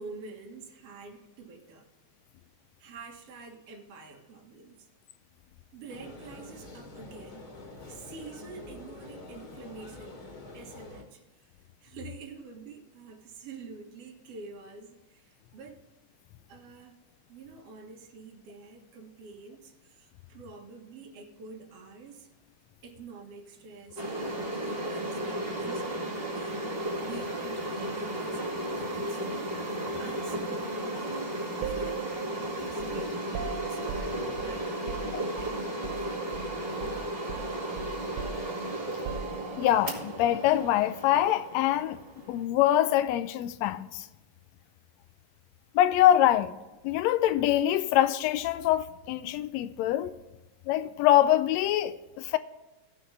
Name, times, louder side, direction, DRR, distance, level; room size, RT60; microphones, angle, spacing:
voice 1, 0.0-1.9 2.8-4.9 5.7-7.5 7.9-10.3 10.5-11.5 11.8-15.8 16.5-17.0 17.3-22.3 22.8-28.5 28.8-29.5 30.0-32.1 32.5-33.8 34.3-36.3, right 4 dB, 55° right, 2.3 m, -47 dB
sound 1, 5.9-11.0, left 2 dB, 45° left, 2.7 m, -46 dB
sound 2, 24.0-42.4, right 1 dB, 20° right, 2.2 m, -34 dB
sound 3, 31.6-36.1 36.3-36.5 36.8-39.8, right 8 dB, 75° right, 1.6 m, -40 dB
voice 2, 39.6-42.0 42.3-44.1 45.7-46.5 46.8-50.1 50.7-52.4, left 12 dB, 80° left, 1.7 m, -24 dB
17.0 x 6.1 x 3.3 m
omnidirectional pair, 3.4 m